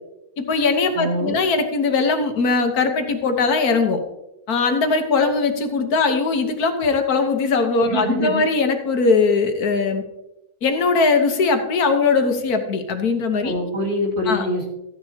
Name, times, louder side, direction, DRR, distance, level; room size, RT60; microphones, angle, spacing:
voice 1, 0.4-4.0 4.5-10.0 10.6-13.5 14.3-14.5, left 4 dB, 85° left, 6 dB, 1.6 m, -20 dB
voice 2, 0.9-1.4 7.9-8.4 13.4-14.7, equal, 55° right, -3 dB, 2.8 m, -24 dB
14.0 x 10.0 x 2.8 m, 0.96 s
omnidirectional pair, 1.5 m